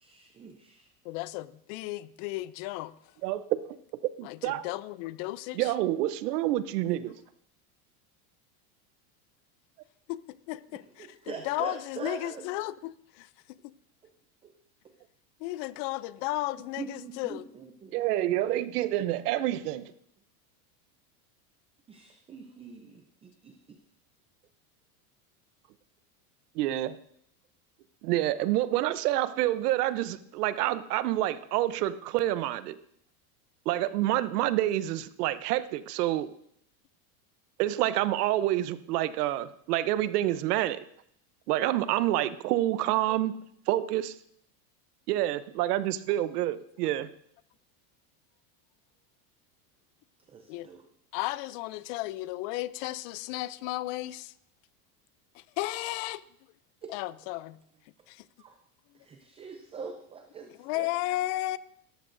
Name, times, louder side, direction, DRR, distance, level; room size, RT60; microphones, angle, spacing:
voice 1, 0.0-0.9 11.0-12.5 14.4-14.5 16.8-18.6 21.9-23.6 50.3-50.8 56.8-56.9 58.4-58.6 58.9-60.9, right 5 dB, 15° right, 5 dB, 0.5 m, -43 dB
voice 2, 1.0-2.9 4.2-5.7 10.1-13.7 15.4-17.4 50.5-50.7 51.1-54.3 55.3-56.2 56.9-57.6 58.1-58.3 60.6-61.6, left 17 dB, 45° left, 18 dB, 0.4 m, -34 dB
voice 3, 3.2-3.6 4.0-4.7 5.5-7.2 17.9-19.9 26.5-27.0 28.0-32.8 33.7-36.3 37.6-40.8 41.5-43.4 43.7-44.1 45.1-47.1, right 14 dB, 80° right, 15 dB, 0.8 m, -28 dB
17.5 x 13.5 x 2.6 m, 0.68 s
supercardioid pair, 145°, 46 cm